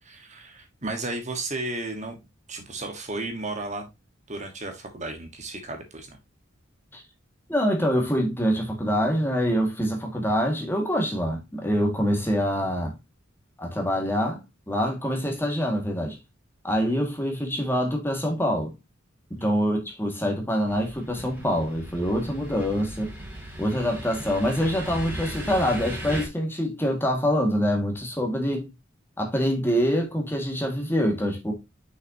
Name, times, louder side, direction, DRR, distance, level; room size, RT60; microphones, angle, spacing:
voice 1, 0.0-2.2 2.5-3.9 4.3-6.2 19.4-19.5, right 2 dB, 35° right, 1.3 m, -34 dB
voice 2, 7.5-12.9 13.6-14.4 14.7-16.2 16.6-18.7 19.3-23.1 23.6-28.7 29.2-31.5, equal, 10° left, 1.7 m, -25 dB
sound 1, 20.7-26.3, right 1 dB, 10° right, 2.7 m, -37 dB
6.4 x 5.9 x 2.7 m
head